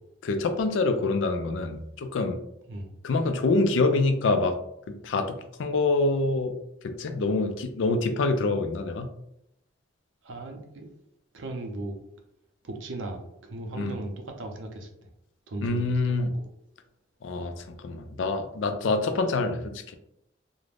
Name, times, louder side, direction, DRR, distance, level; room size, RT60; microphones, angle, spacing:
voice 1, 0.2-2.4 3.0-4.6 4.9-5.3 5.6-6.6 6.8-9.1 13.8-14.0 15.6-16.3 17.2-19.9, left 3 dB, 80° left, 7 dB, 0.4 m, -26 dB
voice 2, 10.2-10.9 11.3-11.9 12.6-15.1 15.5-16.3, right 2 dB, 80° right, 3 dB, 0.5 m, -37 dB
2.4 x 2.1 x 3.2 m, 0.79 s
head